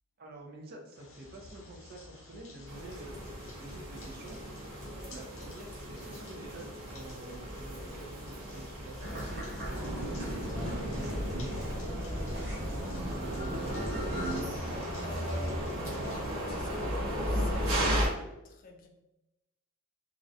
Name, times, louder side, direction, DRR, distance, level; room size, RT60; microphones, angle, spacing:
voice 1, 0.2-4.4 5.1-6.7 6.9-10.5 10.9-13.5, right 1 dB, 45° right, 0 dB, 0.5 m, -48 dB
sound 1, 0.9-16.4, left 2 dB, 60° left, 0.7 m, -52 dB
sound 2, 2.7-18.1, equal, 80° right, 0.7 m, -36 dB
sound 3, 9.0-14.4, equal, 60° right, 1.2 m, -37 dB
voice 2, 15.0-18.9, left 4 dB, 40° left, 3 dB, 0.3 m, -48 dB
2.4 x 2.1 x 2.6 m, 0.94 s
head